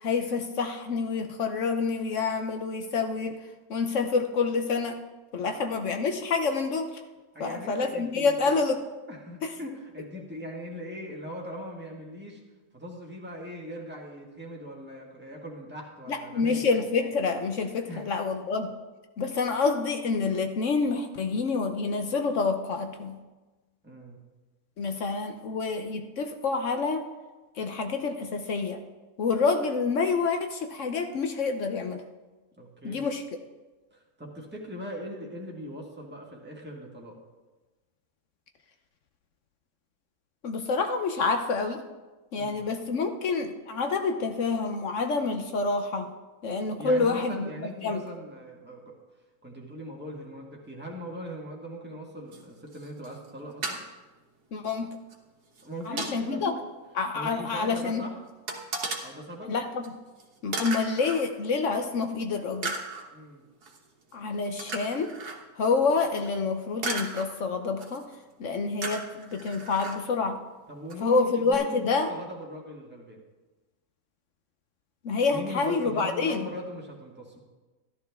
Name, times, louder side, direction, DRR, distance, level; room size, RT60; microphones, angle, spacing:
voice 1, 0.0-3.4 3.7-5.0 5.3-7.0 7.4-8.8 9.4-9.5 16.1-18.7 19.2-23.2 24.8-27.0 27.6-28.8 29.2-32.0 32.8-33.2 40.4-41.8 42.3-46.1 46.4-47.5 47.8-48.0 54.5-54.9 55.9-56.5 57.0-58.0 59.4-59.8 60.4-62.7 64.1-65.1 65.6-68.0 68.4-70.4 71.0-72.1 75.0-76.4, left 4 dB, 60° left, 6 dB, 1.0 m, -27 dB
voice 2, 5.3-5.7 7.3-8.6 9.1-12.4 12.7-16.7 17.9-18.0 23.8-24.2 32.6-33.1 33.9-37.2 42.4-42.6 46.8-49.0 49.4-53.8 55.6-56.6 57.1-58.2 59.0-59.5 63.1-63.4 70.7-73.2 75.3-77.4, equal, 5° right, -2 dB, 1.6 m, -40 dB
sound 1, 52.3-52.4 52.7-53.3 53.6-53.8 55.1-55.2 55.6-56.2 57.3-57.4 57.6-57.7 58.5-59.0 59.8-59.9 60.2-60.3 60.5-61.2 62.0-62.1 62.6-63.1 63.6-63.8 64.6-65.4 66.2-66.3 66.8-67.3 67.8-68.2 68.8-70.0 70.9-71.0 71.5-71.6, right 3 dB, 85° right, 1.8 m, -35 dB
13.5 x 11.5 x 3.5 m, 1.2 s
omnidirectional pair, 1.6 m